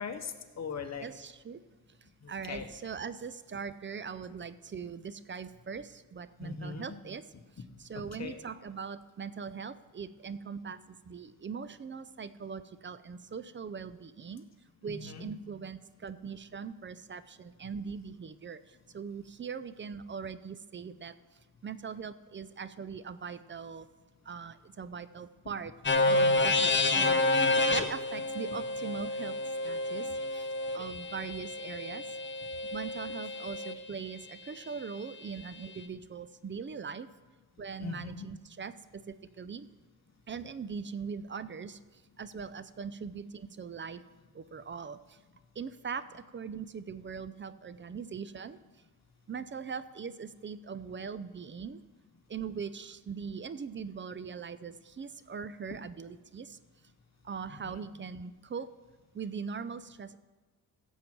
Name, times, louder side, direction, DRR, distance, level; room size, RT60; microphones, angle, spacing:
voice 1, 0.0-1.0 2.2-2.7 6.4-6.8 8.2-8.4 14.9-15.3 37.8-38.3 57.5-57.8, left 5 dB, 45° left, 6 dB, 1.2 m, -40 dB
voice 2, 1.0-1.6 2.3-7.3 7.8-14.4 14.8-18.6 18.9-21.1 21.6-23.9 24.3-25.7 26.1-27.2 27.7-29.4 29.6-30.5 30.7-32.0 32.7-37.1 37.6-39.7 40.3-41.8 42.2-44.0 44.3-45.0 45.6-48.6 49.3-51.8 52.3-56.6 57.2-58.7 59.1-60.2, right 6 dB, 35° right, 15 dB, 0.5 m, -41 dB
sound 1, 25.8-33.7, left 2 dB, 30° left, 1.0 m, -29 dB
15.5 x 7.3 x 4.6 m, 1.3 s
cardioid pair, 85°, 36 cm